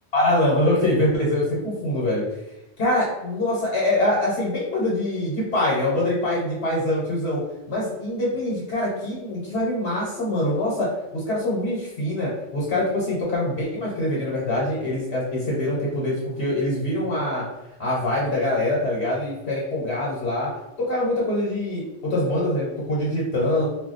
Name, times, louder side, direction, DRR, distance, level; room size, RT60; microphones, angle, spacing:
voice 1, 0.1-2.2 2.8-7.4 7.7-17.4 17.8-20.5 20.8-23.7, left 1 dB, 85° left, -5 dB, 1.1 m, -24 dB
2.3 x 2.2 x 3.9 m, 0.94 s
omnidirectional pair, 1.1 m